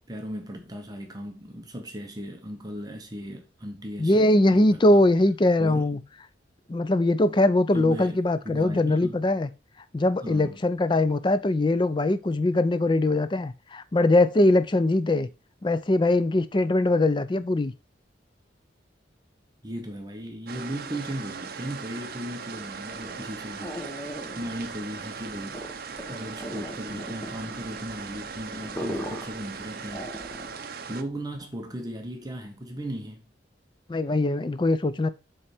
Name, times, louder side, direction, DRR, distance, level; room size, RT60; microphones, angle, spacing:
voice 1, 0.0-4.3 4.5-5.0 5.6-6.0 7.7-8.2 8.4-9.2 10.2-10.6 19.6-24.0 24.4-25.7 26.1-30.2 30.9-33.2, equal, 20° right, 0.9 m, -37 dB
voice 2, 4.0-6.0 6.7-9.5 9.9-15.3 15.6-17.7 33.9-35.1, left 2 dB, 25° left, 0.4 m, -22 dB
sound 1, 20.5-31.0, right 5 dB, 55° right, 0.6 m, -39 dB
sound 2, 22.8-30.7, equal, 10° left, 1.0 m, -39 dB
7.5 x 3.3 x 4.3 m
head